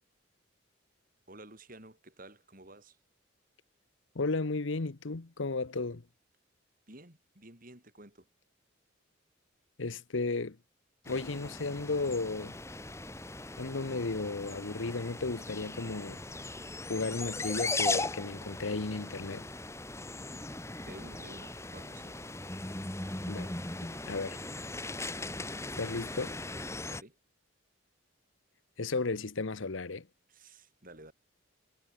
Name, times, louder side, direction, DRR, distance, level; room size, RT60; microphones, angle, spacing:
voice 1, 1.3-3.0 6.9-8.3 20.8-22.2 26.8-27.2 30.3-31.1, right 2 dB, 45° right, 4.4 m, -52 dB
voice 2, 4.1-6.0 9.8-10.6 11.1-12.6 13.6-16.2 16.9-19.5 23.3-23.5 24.0-24.4 25.8-26.4 28.8-30.0, left 3 dB, 70° left, 1.0 m, -34 dB
sound 1, 11.0-27.0, left 2 dB, 15° left, 1.7 m, -38 dB
head